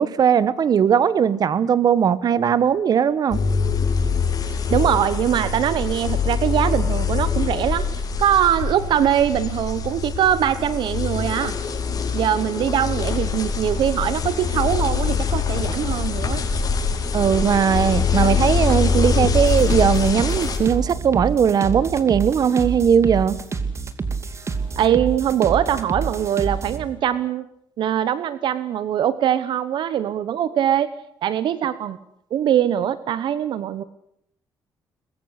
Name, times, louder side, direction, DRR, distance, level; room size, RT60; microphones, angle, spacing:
voice 1, 0.0-3.4 17.1-23.4, right 8 dB, 50° right, 17 dB, 1.4 m, -19 dB
sound 1, 3.3-20.6, left 5 dB, 50° left, 5.8 m, -24 dB
voice 2, 4.7-7.9 8.2-11.6 12.1-16.4 24.8-27.4 27.8-30.9 31.2-32.0 32.3-33.8, right 10 dB, 70° right, 15 dB, 1.1 m, -22 dB
sound 2, 19.2-26.8, right 4 dB, 35° right, 2.6 m, -28 dB
23.0 x 22.0 x 8.3 m, 0.71 s
cardioid pair, 110°, 8 cm